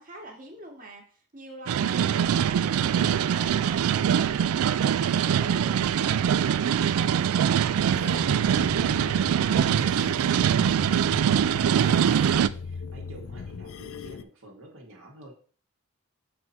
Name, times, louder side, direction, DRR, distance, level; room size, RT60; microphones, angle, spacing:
voice 1, 0.0-5.8 6.0-10.5, right 1 dB, 40° right, 1 dB, 1.7 m, -45 dB
sound 1, 1.7-12.5, right 8 dB, 80° right, 0.3 m, -23 dB
sound 2, 2.2-8.0, left 1 dB, 30° left, 0.9 m, -49 dB
sound 3, 7.8-14.2, left 5 dB, 70° left, 0.4 m, -39 dB
voice 2, 11.5-15.4, right 1 dB, 65° right, -1 dB, 1.6 m, -48 dB
6.6 x 4.2 x 4.3 m, 0.42 s
head